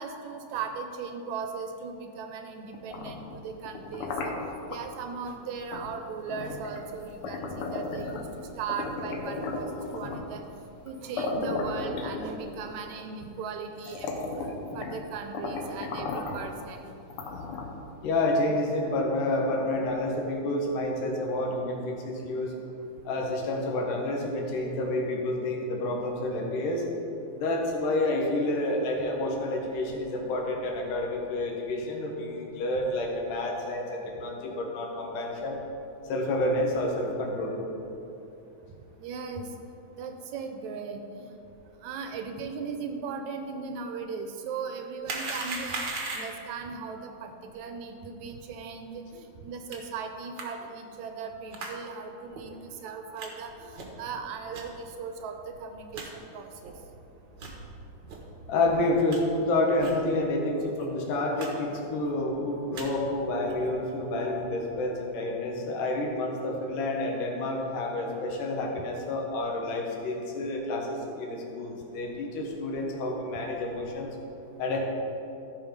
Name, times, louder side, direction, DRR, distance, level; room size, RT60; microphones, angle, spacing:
voice 1, 0.0-10.4 10.8-16.9 39.0-39.5 39.9-41.3 41.8-56.7, right 5 dB, 75° right, 5 dB, 1.9 m, -38 dB
sound 1, 2.7-4.8 5.7-5.9 6.3-8.4 8.7-10.3 10.9-11.0 11.2-12.7 13.3-13.4 13.8-15.0 15.3-16.5 17.1-17.9, left 3 dB, 70° left, 1.3 m, -35 dB
voice 2, 18.0-22.5 23.0-26.8 27.3-35.6 36.1-37.6 58.5-74.1 74.6-74.8, left 2 dB, 85° left, 0 dB, 2.9 m, -29 dB
sound 2, 45.0-46.5 49.7-49.8 50.4-50.5 51.5-51.7 52.3-52.4 53.2-53.3 53.7-54.0 54.5-54.6 55.2-55.3 55.5-55.6 55.9-56.1 56.6-56.7 57.3-57.6 58.1-58.2 58.7-59.2 59.8-60.0 60.3-60.4 60.7-60.8 61.4-61.5 61.7-62.1 62.5-62.9 63.4-63.7, right 3 dB, 55° right, 1.2 m, -37 dB
14.0 x 5.7 x 5.1 m, 2.8 s
omnidirectional pair, 3.6 m